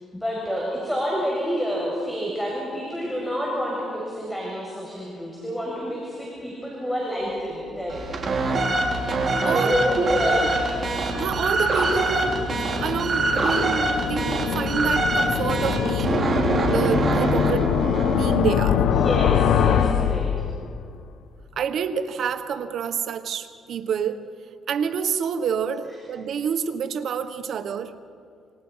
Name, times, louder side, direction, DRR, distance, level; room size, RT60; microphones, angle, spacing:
voice 1, 0.1-8.1 9.4-10.8 18.9-20.2, equal, 5° left, -3 dB, 7.3 m, -28 dB
sound 1, 7.9-18.5, right 2 dB, 40° right, 5.4 m, -24 dB
sound 2, 8.0-20.9, left 8 dB, 80° left, 1.0 m, -25 dB
voice 2, 9.4-10.3 11.1-16.3 16.6-17.7 18.1-18.8 21.6-24.2 24.7-27.9, right 7 dB, 65° right, 10 dB, 1.4 m, -28 dB
28.5 x 27.0 x 5.8 m, 2.3 s
cardioid pair, 90°, 0 cm